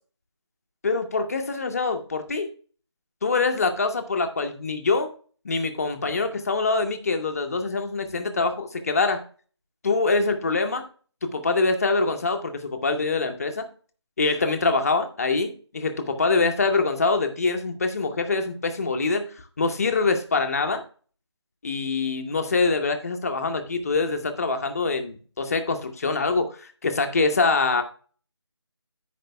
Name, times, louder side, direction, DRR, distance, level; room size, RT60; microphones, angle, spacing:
voice 1, 0.8-2.5 3.2-5.1 5.4-9.2 9.8-10.8 11.2-13.6 14.2-19.2 19.6-20.8 21.6-27.8, left 3 dB, 35° left, 6 dB, 0.9 m, -24 dB
15.5 x 5.3 x 2.2 m, 0.41 s
figure-of-eight pair, 165°, 15 cm